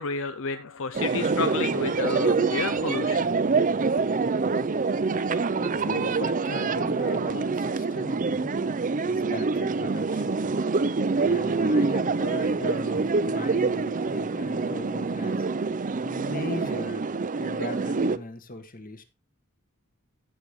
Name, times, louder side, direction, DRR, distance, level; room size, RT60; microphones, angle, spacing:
voice 1, 0.0-3.4, left 5 dB, 65° left, 0.6 m, -31 dB
sound 1, 0.9-18.2, right 4 dB, 40° right, 0.6 m, -26 dB
voice 2, 5.5-8.5 9.0-10.5 11.1-15.4 16.0-17.0 17.4-19.0, left 2 dB, 40° left, 1.6 m, -38 dB
14.5 x 6.8 x 3.2 m
head